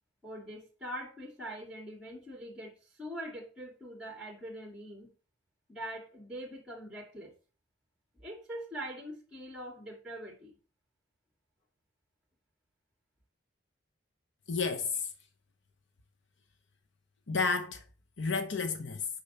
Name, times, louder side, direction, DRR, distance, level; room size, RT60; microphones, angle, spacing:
voice 1, 0.2-2.7 3.0-5.1 5.7-7.3 8.1-10.5, right 1 dB, 5° right, 2.7 m, -43 dB
voice 2, 14.5-15.1 17.3-17.8 18.2-19.1, left 4 dB, 70° left, 0.8 m, -31 dB
6.7 x 5.5 x 6.8 m
head